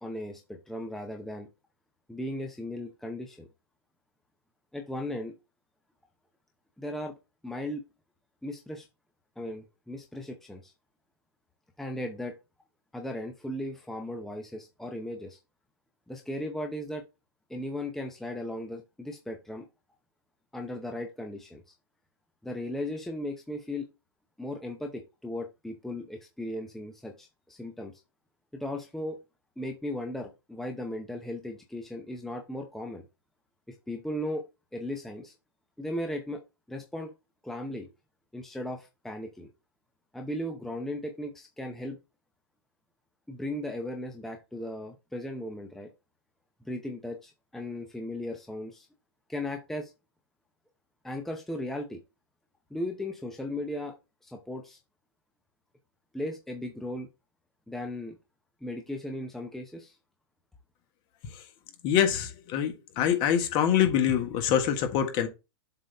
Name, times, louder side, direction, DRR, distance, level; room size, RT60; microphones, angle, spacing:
voice 1, 0.0-1.5 2.1-3.5 4.7-5.3 6.8-7.1 7.4-7.8 8.4-8.8 9.4-10.7 11.8-12.3 12.9-15.4 16.1-17.0 17.5-19.7 20.5-21.6 22.4-23.9 24.4-28.0 28.5-29.2 29.6-33.0 33.7-34.4 34.7-35.3 35.8-36.4 36.7-37.1 37.4-37.9 38.3-39.5 40.1-42.0 43.3-45.9 46.6-48.9 49.3-49.9 51.0-52.0 52.7-53.9 54.2-54.8 56.1-57.1 57.7-58.2 58.6-60.0, left 1 dB, ahead, 0.7 m, -36 dB
voice 2, 61.8-65.3, left 9 dB, 35° left, 1.5 m, -25 dB
7.4 x 4.1 x 3.4 m
hypercardioid pair, 140°, 14 cm